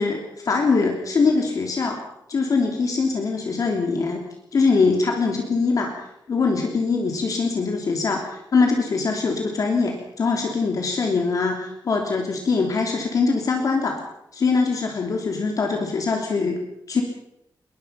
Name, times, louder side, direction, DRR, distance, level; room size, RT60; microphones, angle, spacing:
voice 1, 0.0-2.0 2.3-4.2 4.5-14.0 14.3-16.6 16.9-17.0, left 4 dB, 45° left, 2 dB, 3.1 m, -22 dB
22.0 x 21.0 x 5.8 m, 0.80 s
wide cardioid pair, 180°, 8 cm